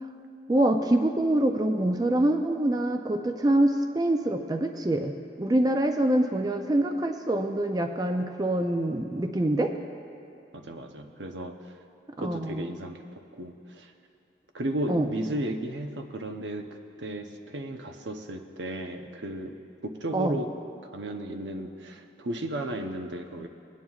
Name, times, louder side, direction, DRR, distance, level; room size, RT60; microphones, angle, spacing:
voice 1, 0.5-9.7 12.2-12.7 14.9-15.1 20.1-20.4, right 1 dB, 20° right, 5 dB, 0.4 m, -25 dB
voice 2, 10.5-11.7 12.2-13.0 13.3-13.9 14.5-16.7 17.0-19.5 19.8-20.5 20.9-23.5, right 1 dB, 85° right, 5 dB, 0.7 m, -34 dB
19.0 x 9.2 x 2.4 m, 2.6 s
head